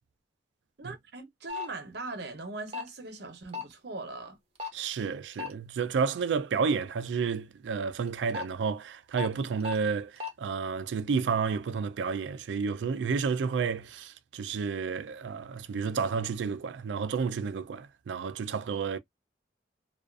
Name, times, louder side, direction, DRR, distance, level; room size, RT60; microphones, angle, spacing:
voice 1, 0.8-4.4, right 3 dB, 70° right, 0.8 m, -40 dB
sound 1, 1.5-1.7 2.7-2.9 3.5-3.7 4.6-4.8 5.3-5.5 8.1-8.4 9.2-9.3 9.6-9.8 10.2-10.3, left 5 dB, 35° right, 0.7 m, -34 dB
voice 2, 4.7-19.0, right 5 dB, 90° right, 0.4 m, -31 dB
2.4 x 2.3 x 2.3 m
head